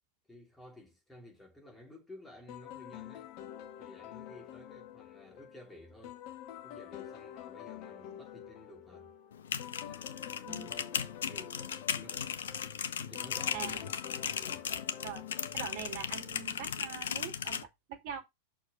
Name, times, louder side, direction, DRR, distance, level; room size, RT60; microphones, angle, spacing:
voice 1, 0.3-3.3 3.8-6.3 6.6-9.1 9.9-11.6 11.9-12.3 13.0-13.9 14.4-14.7, left 1 dB, 5° left, 3.2 m, -54 dB
sound 1, 2.5-16.7, left 11 dB, 45° left, 1.0 m, -48 dB
sound 2, 9.3-17.6, left 8 dB, 65° left, 0.7 m, -37 dB
voice 2, 15.5-18.2, right 8 dB, 45° right, 2.4 m, -43 dB
6.3 x 4.6 x 5.5 m
figure-of-eight pair, 90°, 0 cm